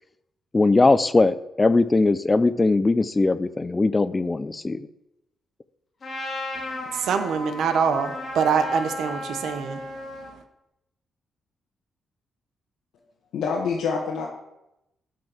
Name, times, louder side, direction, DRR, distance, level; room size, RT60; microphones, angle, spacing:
voice 1, 0.5-4.9, left 3 dB, 15° left, 15 dB, 0.4 m, -20 dB
Trumpet, 6.0-10.3, left 1 dB, 35° left, 2.5 m, -34 dB
voice 2, 6.5-10.4, right 6 dB, 65° right, 8 dB, 1.0 m, -25 dB
voice 3, 13.3-14.3, left 5 dB, 85° left, -3 dB, 1.5 m, -26 dB
9.1 x 5.4 x 6.0 m, 0.87 s
wide cardioid pair, 170°, 0 cm